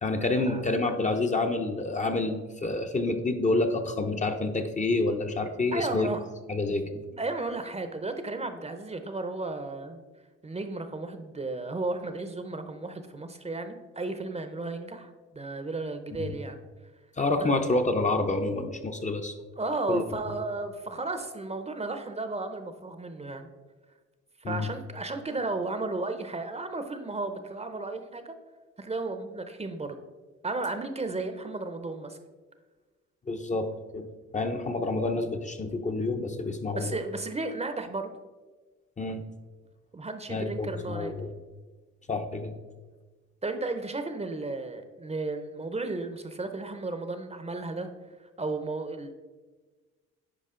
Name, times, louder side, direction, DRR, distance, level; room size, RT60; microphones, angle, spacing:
voice 1, 0.0-6.1 6.5-7.0 16.2-16.4 17.2-19.3 19.9-20.0 24.4-24.7 33.3-34.1 34.3-37.0 39.0-39.2 40.3-41.3 42.1-42.6, left 2 dB, 25° left, 5 dB, 0.7 m, -28 dB
voice 2, 5.7-6.2 7.2-10.1 10.4-16.6 17.4-17.5 19.0-19.1 19.6-23.5 24.5-28.4 28.8-30.0 30.4-32.2 36.7-38.1 39.9-41.2 43.4-47.9 48.4-49.1, right 3 dB, 20° right, 8 dB, 0.7 m, -34 dB
9.9 x 5.0 x 3.7 m, 1.3 s
cardioid pair, 90°, 30 cm